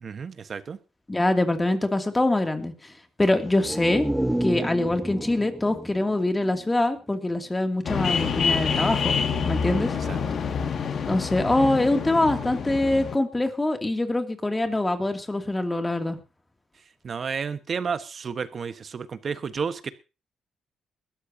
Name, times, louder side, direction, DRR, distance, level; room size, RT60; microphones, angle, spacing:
voice 1, 0.0-0.8 10.1-10.2 17.0-19.9, right 6 dB, 45° right, 11 dB, 1.3 m, -31 dB
voice 2, 1.1-2.9 3.2-4.1 4.4-9.2 9.4-9.9 11.1-16.2, left 2 dB, 15° left, 6 dB, 2.6 m, -24 dB
sound 1, 3.4-7.2 7.5-7.6, right 1 dB, 5° right, 0.6 m, -31 dB
sound 2, 7.8-13.2, left 6 dB, 55° left, 2.1 m, -27 dB
21.0 x 13.5 x 2.8 m, 0.30 s
cardioid pair, 90°, 0 cm